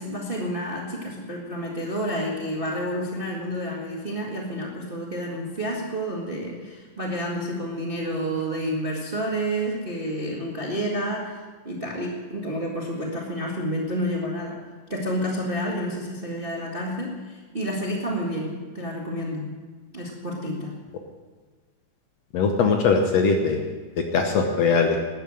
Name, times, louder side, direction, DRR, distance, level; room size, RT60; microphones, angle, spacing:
voice 1, 0.0-11.4 11.6-14.6 14.9-19.5 19.9-20.7, equal, 25° right, -2 dB, 1.1 m, -29 dB
voice 2, 22.3-23.7 24.1-25.0, left 5 dB, 65° left, 4 dB, 1.8 m, -20 dB
12.5 x 10.0 x 7.6 m, 1.4 s
omnidirectional pair, 3.8 m